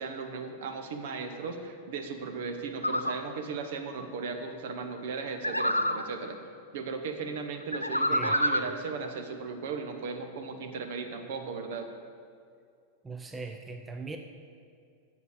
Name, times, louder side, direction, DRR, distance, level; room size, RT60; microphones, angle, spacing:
voice 1, 0.0-6.4 6.7-11.9, right 4 dB, 55° right, 6 dB, 1.0 m, -36 dB
sound 1, 2.8-3.1 5.4-6.0 7.7-8.7, left 1 dB, 90° left, 0.4 m, -27 dB
voice 2, 13.0-14.2, right 4 dB, 15° right, 5 dB, 0.6 m, -39 dB
8.1 x 6.9 x 6.3 m, 2.3 s
figure-of-eight pair, 90°, 0 cm